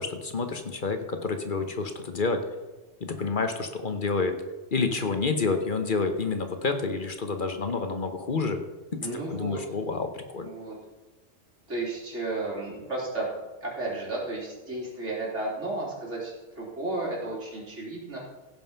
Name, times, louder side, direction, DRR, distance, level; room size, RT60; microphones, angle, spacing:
voice 1, 0.0-2.4 3.1-4.3 4.7-8.6 8.9-9.0 9.3-10.5, left 4 dB, 45° left, 7 dB, 1.1 m, -28 dB
voice 2, 9.0-9.6 10.4-10.8 11.7-13.3 13.6-18.2, right 2 dB, 85° right, -4 dB, 3.9 m, -33 dB
16.0 x 5.5 x 5.7 m, 1.1 s
omnidirectional pair, 1.2 m